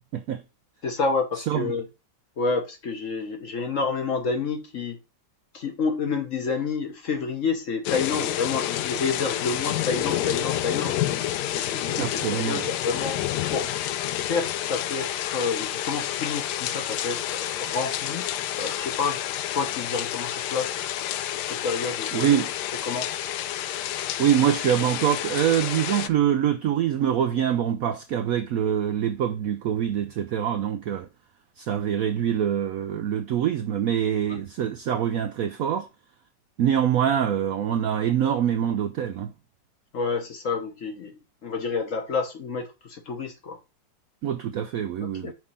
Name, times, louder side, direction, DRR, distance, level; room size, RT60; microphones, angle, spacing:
voice 1, 0.8-1.9 2.4-5.0 5.5-11.0 11.5-13.2 13.5-13.7 14.3-18.3 18.6-19.2 19.5-20.7 21.5-22.3 22.8-23.1 34.3-34.4 39.9-43.6 45.0-45.3, left 4 dB, 50° left, 1.2 m, -29 dB
sound 1, 7.8-26.1, left 12 dB, 75° left, 1.1 m, -29 dB
voice 2, 12.0-12.6 22.1-22.5 24.2-31.1 31.6-35.9 36.6-39.3 44.2-45.3, right 9 dB, 75° right, 0.8 m, -24 dB
6.1 x 3.7 x 5.5 m
omnidirectional pair, 2.0 m